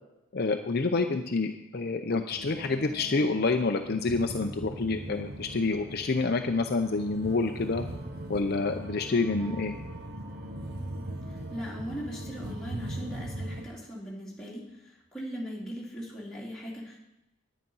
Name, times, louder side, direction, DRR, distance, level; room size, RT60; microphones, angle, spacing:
voice 1, 0.3-7.9 8.3-9.7, left 3 dB, 50° left, 5 dB, 0.6 m, -28 dB
sound 1, 2.4-13.7, right 1 dB, 50° right, 1.1 m, -40 dB
voice 2, 11.5-17.0, equal, ahead, -6 dB, 3.0 m, -39 dB
10.5 x 9.2 x 5.5 m, 0.95 s
head